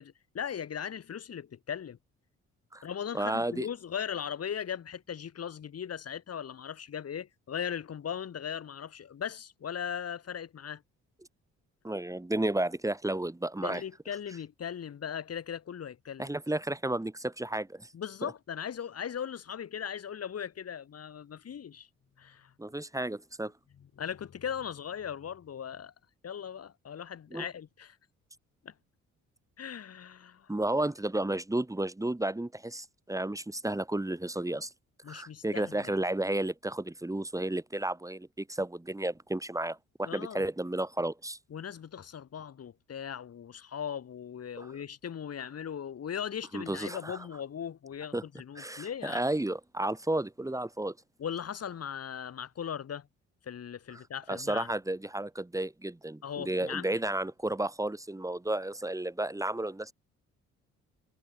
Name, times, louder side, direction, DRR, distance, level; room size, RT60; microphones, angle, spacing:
voice 1, 0.0-2.0 2.8-10.8 13.6-16.3 17.9-21.9 22.2-22.5 24.0-25.9 26.2-28.0 28.6-28.7 29.6-30.5 35.0-36.0 40.0-40.4 41.5-49.3 51.2-53.1 53.4-54.7 56.2-57.0, left 8 dB, 55° left, 4.2 m, -38 dB
voice 2, 3.1-3.7 11.8-13.8 16.2-17.9 18.2-18.3 22.6-23.5 27.3-27.5 30.5-34.7 35.1-41.4 44.6-44.8 46.5-47.2 48.1-48.2 48.6-51.0 54.3-59.9, right 1 dB, 10° right, 3.8 m, -32 dB
cardioid pair, 90°, 30 cm